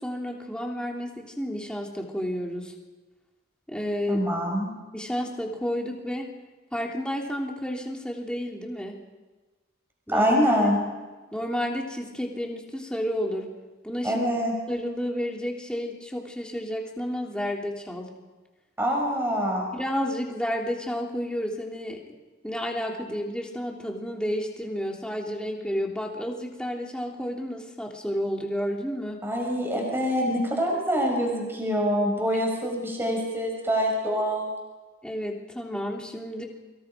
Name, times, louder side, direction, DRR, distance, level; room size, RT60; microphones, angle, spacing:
voice 1, 0.0-2.7 3.7-4.3 4.9-6.3 6.7-9.0 10.1-10.3 10.6-10.7 11.3-13.5 13.8-14.3 14.7-18.1 19.7-22.0 22.4-29.3 35.0-36.4, equal, 5° left, 0 dB, 3.2 m, -31 dB
voice 2, 4.1-4.7 10.1-10.8 14.0-14.5 18.8-19.7 29.2-34.5, equal, 10° right, 0 dB, 6.1 m, -25 dB
30.0 x 25.5 x 5.1 m, 1.3 s
head